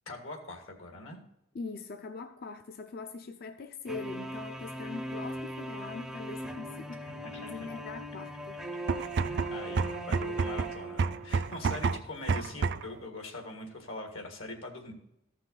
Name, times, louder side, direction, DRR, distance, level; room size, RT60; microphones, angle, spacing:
voice 1, 0.1-1.2 7.2-7.7 9.2-9.8 10.1-14.9, left 2 dB, 75° left, 1.8 m, -42 dB
voice 2, 1.5-7.1 7.4-8.6, left 4 dB, 50° left, 0.5 m, -42 dB
sound 1, 3.9-11.6, right 1 dB, ahead, 0.5 m, -39 dB
sound 2, 8.8-13.0, right 5 dB, 55° right, 0.4 m, -30 dB
14.0 x 5.8 x 4.0 m
head